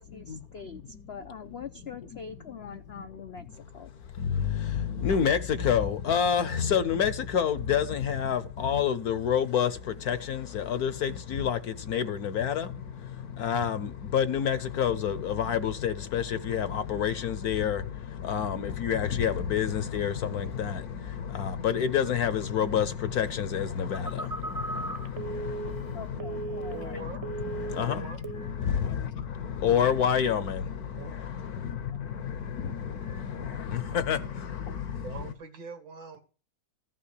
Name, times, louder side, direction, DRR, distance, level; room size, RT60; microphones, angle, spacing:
voice 1, 0.0-3.5 3.7-3.9 25.9-27.1, left 6 dB, 80° left, 0.5 m, -43 dB
voice 2, 4.1-35.1, left 8 dB, 65° left, 1.1 m, -29 dB
Telephone, 23.9-27.0 27.2-27.9 28.2-28.5, right 3 dB, 35° right, 0.6 m, -37 dB
voice 3, 26.7-27.3 27.7-28.2 30.7-31.2 34.9-36.2, right 4 dB, 70° right, 2.6 m, -42 dB
15.0 x 5.7 x 8.3 m
omnidirectional pair, 2.1 m